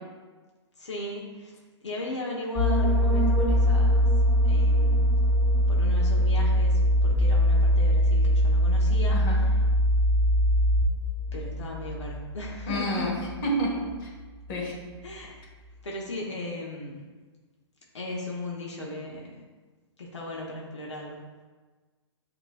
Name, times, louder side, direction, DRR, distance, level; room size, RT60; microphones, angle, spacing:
voice 1, 0.8-4.1 4.4-5.1 5.7-9.5 11.3-13.1 15.0-15.4 15.8-17.0 17.9-19.4 20.0-21.2, left 2 dB, 90° left, -2 dB, 0.9 m, -37 dB
sound 1, 2.6-13.9 14.2-14.5, equal, 10° right, 0.6 m, -22 dB
voice 2, 9.1-9.4 12.7-13.1 13.4-14.1 14.5-14.8, equal, 45° left, -2 dB, 1.4 m, -29 dB
7.3 x 2.9 x 2.3 m, 1.4 s
hypercardioid pair, 135°, 15 cm